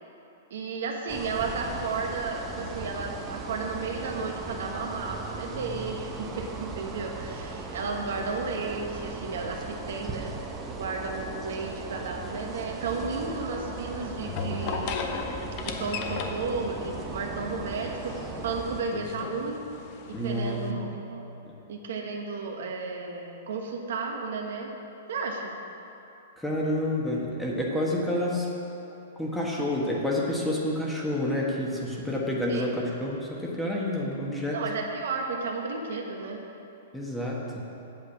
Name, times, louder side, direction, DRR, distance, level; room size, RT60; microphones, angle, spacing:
voice 1, 0.5-10.3 10.8-15.2 15.6-18.1 18.4-19.6 20.1-21.3 21.7-24.7 25.1-25.5 32.5-32.7 34.5-36.4, right 4 dB, 70° right, 1 dB, 1.3 m, -33 dB
sound 1, 1.1-18.8, right 3 dB, 20° right, 0.9 m, -38 dB
sound 2, 12.2-20.7, left 5 dB, 45° left, 0.8 m, -38 dB
voice 2, 20.1-20.8 26.4-28.5 29.2-34.6 36.9-37.6, left 1 dB, 5° left, -3 dB, 1.5 m, -29 dB
8.2 x 7.9 x 5.9 m, 3.0 s
hypercardioid pair, 135°, 0 cm